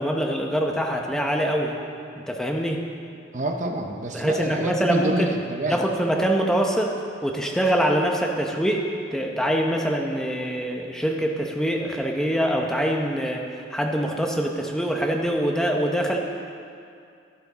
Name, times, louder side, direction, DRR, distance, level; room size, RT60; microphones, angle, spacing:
voice 1, 0.0-1.8 2.3-2.8 4.1-5.3 5.7-6.9 7.2-16.2, equal, 5° left, 1 dB, 0.7 m, -24 dB
voice 2, 3.3-5.8, right 2 dB, 40° right, 4 dB, 0.7 m, -27 dB
11.5 x 11.5 x 4.0 m, 2.4 s
head